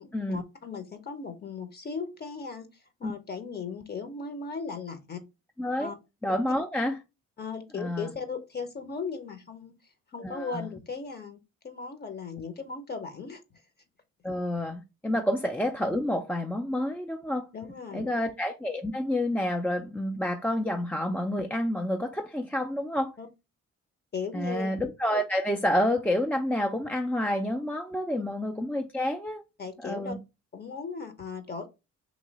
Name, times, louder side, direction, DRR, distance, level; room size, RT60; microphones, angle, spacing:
voice 1, 0.0-2.7 3.0-5.2 5.8-6.0 7.4-9.7 10.1-11.4 11.6-13.4 15.1-15.2 17.5-18.2 23.2-23.3 24.1-24.7 29.6-30.2 30.5-31.7, left 4 dB, 35° left, 0.7 m, -37 dB
voice 2, 5.6-5.9 6.2-7.0 7.7-8.1 10.2-10.7 14.2-17.5 17.9-23.1 24.3-29.4 29.8-30.2, left 1 dB, 5° left, 0.3 m, -29 dB
3.0 x 2.8 x 3.9 m
cardioid pair, 90°, 30 cm